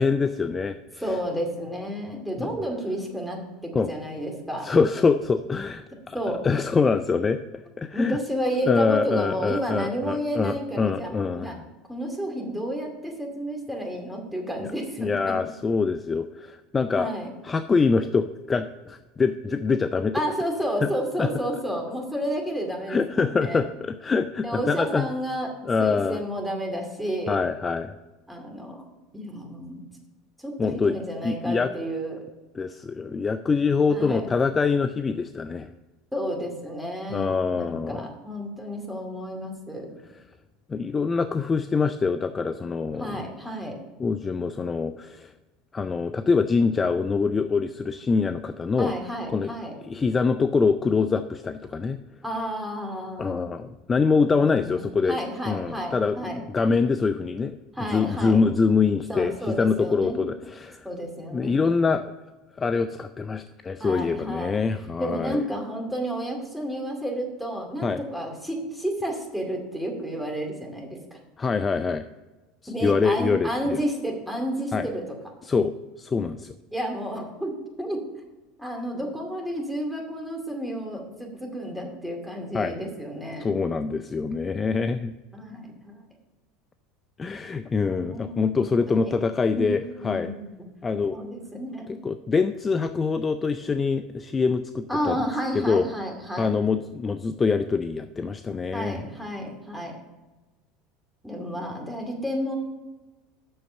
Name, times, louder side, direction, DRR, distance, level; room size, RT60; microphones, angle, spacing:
voice 1, 0.0-1.0 2.4-2.5 3.7-3.9 4.6-7.4 7.8-8.2 8.7-11.6 14.6-14.7 15.0-17.1 17.4-20.2 21.2-21.3 22.9-25.1 25.7-26.2 27.3-27.9 30.6-30.9 31.2-31.7 32.5-35.7 37.1-38.0 40.7-43.2 44.0-45.3 45.7-48.9 49.3-49.5 49.9-52.0 53.2-55.2 55.5-57.6 57.9-60.9 61.3-62.0 62.6-65.4 67.8-68.0 71.4-72.0 72.8-73.8 74.7-74.9 75.4-76.5 82.5-82.7 83.4-85.1 87.2-90.3 90.8-91.2 91.9-95.2 95.5-95.9 96.4-99.0, left 4 dB, 25° left, 10 dB, 0.4 m, -24 dB
voice 2, 1.0-4.7 6.1-6.4 7.9-11.6 11.9-15.3 17.0-17.3 20.1-23.6 24.4-25.5 25.8-27.4 28.3-28.8 29.1-29.8 30.4-32.3 33.9-34.2 36.1-39.9 43.0-43.8 48.8-49.8 52.2-53.5 54.2-56.4 57.7-58.4 59.1-60.2 60.8-61.6 63.8-64.6 65.0-71.2 72.7-75.2 76.7-78.0 78.6-83.6 85.3-86.0 87.8-89.1 89.5-89.7 90.0-90.7 91.1-91.9 94.9-96.5 98.7-100.0 101.2-102.6, equal, 5° right, 1 dB, 2.3 m, -31 dB
7.9 x 6.4 x 5.5 m, 1.1 s
figure-of-eight pair, 75°, 0 cm